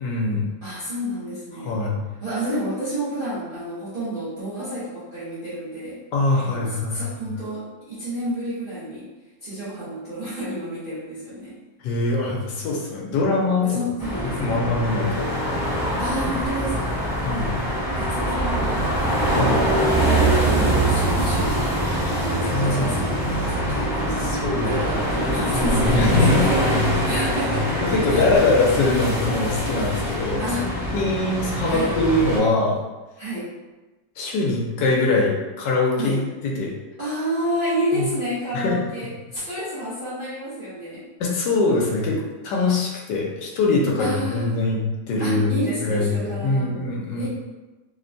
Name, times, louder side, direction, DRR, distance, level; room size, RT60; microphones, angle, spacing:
voice 1, 0.0-0.4 1.6-2.0 6.1-7.0 11.8-13.7 14.2-15.3 17.2-17.5 18.8-18.9 19.3-19.6 22.5-22.9 24.2-24.9 25.2-26.5 27.8-30.5 30.9-32.8 34.2-36.7 37.9-38.1 38.5-38.8 41.2-44.8 45.1-45.5 45.8-47.3, left 3 dB, 75° left, -2 dB, 1.2 m, -23 dB
voice 2, 0.6-1.8 2.2-6.0 6.4-9.1 9.4-11.6 13.6-14.5 16.0-17.0 17.3-17.5 17.9-18.9 19.2-19.5 20.1-21.8 22.1-26.6 27.0-27.7 28.1-28.2 30.4-30.9 31.6-32.0 33.2-33.5 36.0-36.2 37.0-41.1 44.0-44.6 45.2-46.7 47.2-47.3, right 1 dB, 55° right, -12 dB, 0.6 m, -30 dB
sound 1, 14.0-32.4, right 1 dB, 35° left, 0.3 m, -23 dB
sound 2, 16.1-28.4, equal, 55° left, 0.8 m, -38 dB
3.2 x 2.1 x 2.5 m, 1.2 s
omnidirectional pair, 1.9 m